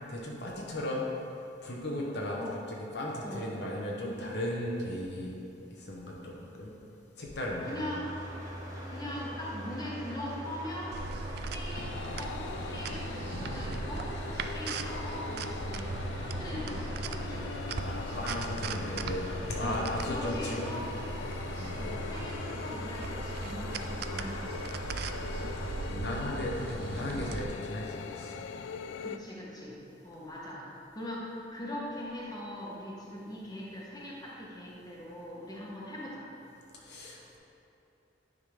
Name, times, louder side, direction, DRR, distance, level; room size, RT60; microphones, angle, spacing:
voice 1, 0.1-1.0 1.6-2.4 2.7-5.3 5.8-6.7 7.2-7.7 13.3-13.7 17.7-20.7 21.5-21.8 25.1-28.3 36.8-37.4, left 1 dB, 65° left, -3 dB, 1.0 m, -36 dB
voice 2, 7.6-8.1 8.9-11.0 11.4-14.2 14.5-17.5 19.6-20.9 21.8-24.8 29.0-29.7 30.0-30.6 30.9-36.3, left 1 dB, 20° left, -5 dB, 1.3 m, -41 dB
sound 1, 7.6-25.8, right 1 dB, 20° right, 1.3 m, -41 dB
sound 2, 10.9-27.4, right 3 dB, 60° right, 0.4 m, -39 dB
sound 3, 11.7-29.2, left 6 dB, 85° left, 0.3 m, -42 dB
10.0 x 3.8 x 5.0 m, 2.9 s
head